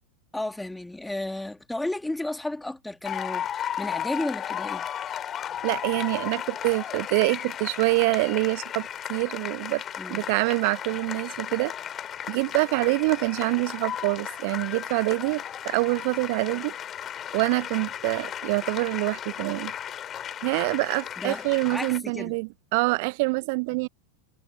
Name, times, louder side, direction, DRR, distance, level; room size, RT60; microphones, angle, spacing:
voice 1, 0.3-4.9 10.0-10.3 21.2-22.4, left 1 dB, 5° left, 2.8 m, -33 dB
sound 1, 3.0-22.0, left 9 dB, 25° left, 2.8 m, -35 dB
voice 2, 5.6-9.8 10.1-11.7 12.3-16.7 17.3-19.7 20.4-23.9, right 29 dB, 45° right, 0.9 m, -26 dB
figure-of-eight pair, 90°, 0 cm